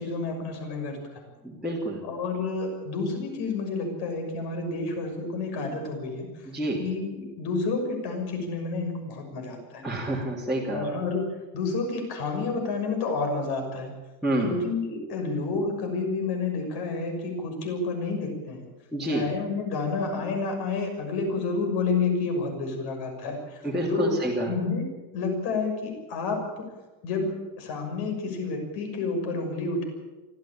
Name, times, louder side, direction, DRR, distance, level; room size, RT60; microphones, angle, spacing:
voice 1, 0.0-1.3 2.0-6.5 6.8-9.9 10.7-13.9 14.4-18.7 19.1-23.6 23.9-24.2 24.5-26.7 27.0-29.8, left 3 dB, 50° left, 4 dB, 6.4 m, -30 dB
voice 2, 1.4-2.0 6.5-6.8 9.8-10.9 14.2-14.5 18.9-19.3 23.6-24.5, right 1 dB, ahead, -7 dB, 2.9 m, -28 dB
24.5 x 14.5 x 8.8 m, 1.2 s
cardioid pair, 170°, 48 cm